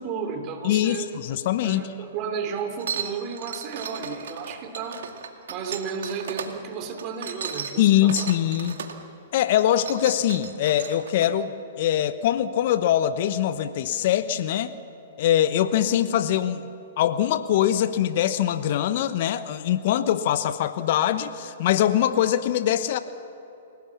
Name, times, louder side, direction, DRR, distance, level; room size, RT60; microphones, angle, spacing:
voice 1, 0.0-1.1 1.6-5.1 5.5-8.3, right 6 dB, 35° right, 6 dB, 3.2 m, -33 dB
voice 2, 0.6-1.9 7.8-8.8 9.3-14.7 15.2-16.7 17.0-23.0, left 11 dB, 55° left, 12 dB, 1.0 m, -23 dB
sound 1, 2.8-6.5 7.0-9.0 9.5-11.3, right 7 dB, 65° right, 2.2 m, -35 dB
29.0 x 18.0 x 7.2 m, 3.0 s
hypercardioid pair, 115°, 0 cm